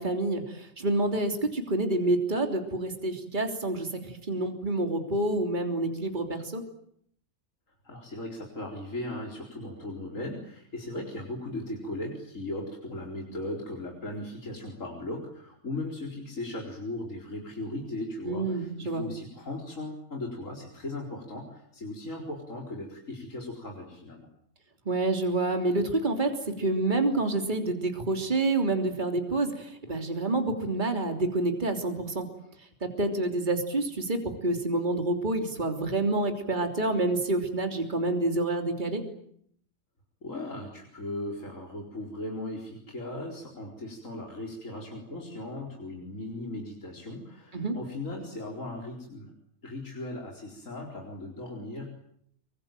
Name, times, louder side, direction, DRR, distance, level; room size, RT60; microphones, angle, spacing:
voice 1, 0.0-6.6 18.3-19.0 24.9-32.3 33.0-39.0 47.5-47.8, right 2 dB, 35° right, 4 dB, 3.4 m, -28 dB
voice 2, 7.8-24.3 40.2-49.3 49.6-51.9, left 1 dB, 65° left, 0 dB, 4.8 m, -37 dB
26.0 x 24.0 x 9.1 m, 0.68 s
omnidirectional pair, 1.5 m